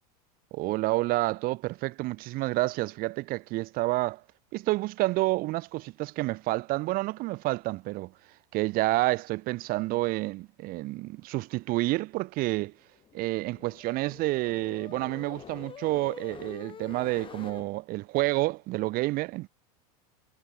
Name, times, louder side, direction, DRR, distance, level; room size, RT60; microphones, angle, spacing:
voice 1, 0.5-4.2 4.5-8.1 8.5-12.7 13.1-19.5, right 20 dB, 50° right, 4.3 m, -29 dB
sound 1, 12.9-17.6, left 8 dB, 25° left, 5.6 m, -46 dB
supercardioid pair, 130°, 19 cm